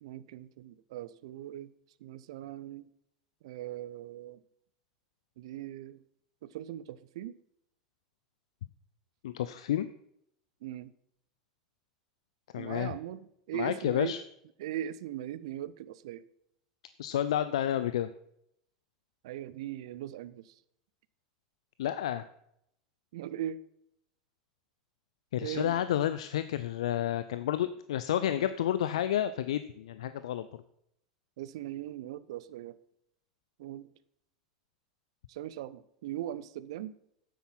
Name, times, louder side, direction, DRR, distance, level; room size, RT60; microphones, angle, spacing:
voice 1, 0.0-1.7 2.0-2.8 3.4-4.4 5.4-6.0 6.4-7.3 10.6-10.9 12.6-14.1 14.6-16.2 19.2-20.5 23.1-23.6 25.4-25.8 31.4-32.8 33.6-33.9 35.3-36.9, right 12 dB, 65° right, 16 dB, 0.6 m, -39 dB
voice 2, 9.2-9.9 12.5-13.0 13.5-14.2 17.0-18.1 21.8-22.3 25.3-30.6, left 11 dB, 70° left, 13 dB, 0.5 m, -30 dB
9.2 x 8.4 x 5.8 m, 0.75 s
hypercardioid pair, 85°, 3 cm